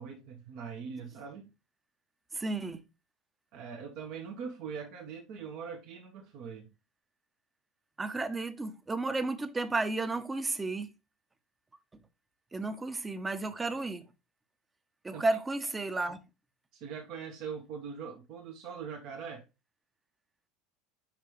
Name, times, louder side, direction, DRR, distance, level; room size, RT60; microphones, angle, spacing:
voice 1, 0.0-1.5 3.5-6.7 15.1-15.2 16.7-19.4, right 6 dB, 50° right, 1.2 m, -42 dB
voice 2, 2.3-2.8 8.0-10.9 11.9-12.0 12.5-14.0 15.0-16.2, right 3 dB, 15° right, 0.9 m, -33 dB
5.9 x 5.5 x 3.2 m
figure-of-eight pair, 75°, 0 cm